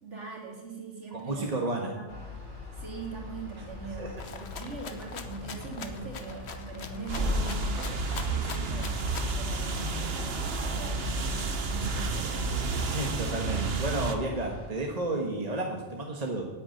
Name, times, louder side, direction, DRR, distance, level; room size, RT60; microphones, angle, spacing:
voice 1, 0.0-1.5 1.9-2.1 2.7-12.6, right 4 dB, 75° right, -1 dB, 3.3 m, -42 dB
voice 2, 1.1-1.9 4.0-4.1 12.9-16.4, right 2 dB, 35° right, 0 dB, 1.5 m, -32 dB
sound 1, 2.1-14.7, left 2 dB, 40° left, 3.5 m, -40 dB
Rattle (instrument), 4.2-9.4, left 6 dB, 65° left, 1.2 m, -43 dB
sound 2, 7.1-14.2, right 3 dB, 60° right, 1.3 m, -31 dB
10.0 x 8.5 x 9.3 m, 1.3 s
omnidirectional pair, 1.2 m